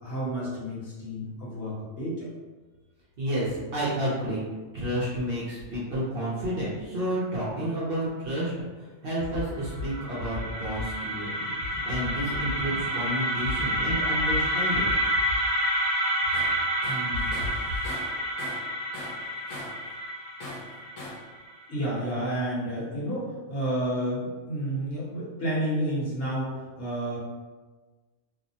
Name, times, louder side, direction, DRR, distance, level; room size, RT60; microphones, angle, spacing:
voice 1, 0.0-2.3 16.9-17.6 21.7-27.2, right 1 dB, 55° left, -8 dB, 1.0 m, -31 dB
voice 2, 3.2-4.4 4.7-14.9, right 1 dB, 55° right, -7 dB, 0.7 m, -31 dB
sound 1, 9.2-9.9 10.2-10.8 11.6-12.5 13.4-14.4 14.7-15.4 17.1-17.9, left 3 dB, 25° right, 0.9 m, -35 dB
sound 2, 9.6-21.5, equal, 85° right, 1.0 m, -29 dB
Tools, 16.3-16.6 16.8-18.7 18.9-19.8 20.4-21.3, left 1 dB, 80° left, 1.1 m, -40 dB
2.7 x 2.0 x 2.7 m, 1.3 s
omnidirectional pair, 1.3 m